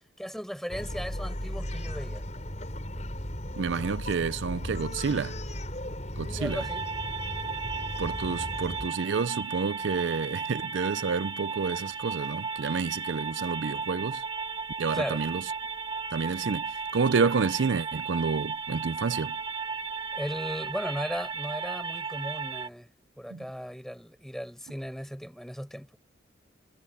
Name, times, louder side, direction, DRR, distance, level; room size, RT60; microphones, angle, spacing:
voice 1, 0.2-2.2 6.2-6.9 14.9-15.3 20.1-22.9 23.2-26.0, equal, ahead, 7.4 m, -36 dB
Bark, 0.7-8.9, left 1 dB, 35° left, 7.7 m, -36 dB
voice 2, 3.6-5.4 6.2-6.6 8.0-14.2 14.8-15.5 16.1-19.4 23.3-23.4, right 5 dB, 75° right, 0.5 m, -29 dB
sound 1, 6.5-22.7, right 5 dB, 25° right, 2.2 m, -35 dB
head